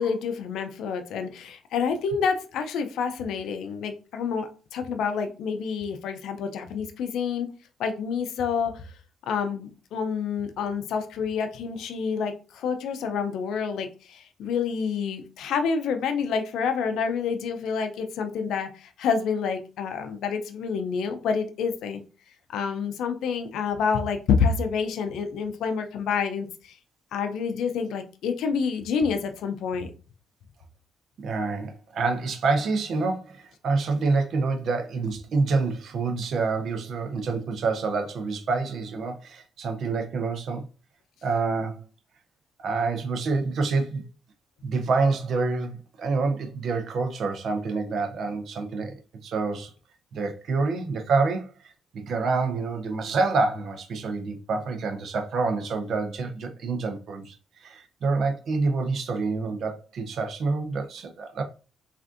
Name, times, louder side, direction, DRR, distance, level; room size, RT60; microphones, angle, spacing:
voice 1, 0.0-7.5 7.8-8.9 9.2-22.0 22.5-26.5 27.1-29.9, left 6 dB, 80° left, 0.4 m, -28 dB
voice 2, 31.2-40.6 41.2-41.8 42.6-44.0 44.6-49.7 50.1-61.4, right 4 dB, 65° right, 0.5 m, -27 dB
3.3 x 2.5 x 2.5 m
cardioid pair, 90°, 0 cm